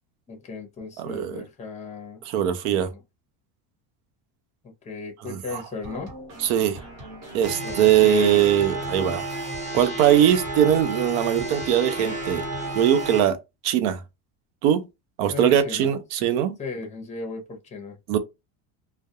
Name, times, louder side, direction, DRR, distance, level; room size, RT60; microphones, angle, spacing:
voice 1, 0.3-2.2 2.6-3.0 4.8-6.1 7.6-8.4 15.3-15.9 16.6-18.0, left 4 dB, 15° left, 0.6 m, -36 dB
voice 2, 1.0-1.4 2.3-2.9 5.3-5.4 6.4-6.8 7.3-9.3 9.7-12.5 12.7-13.4 13.6-14.0 14.6-14.9 15.2-16.6 18.1-18.2, right 10 dB, 85° right, 0.7 m, -21 dB
sound 1, 5.8-13.2, right 1 dB, 40° right, 1.1 m, -42 dB
sound 2, 7.4-13.2, right 2 dB, 15° right, 0.9 m, -32 dB
2.3 x 2.1 x 2.7 m
cardioid pair, 150°, 41 cm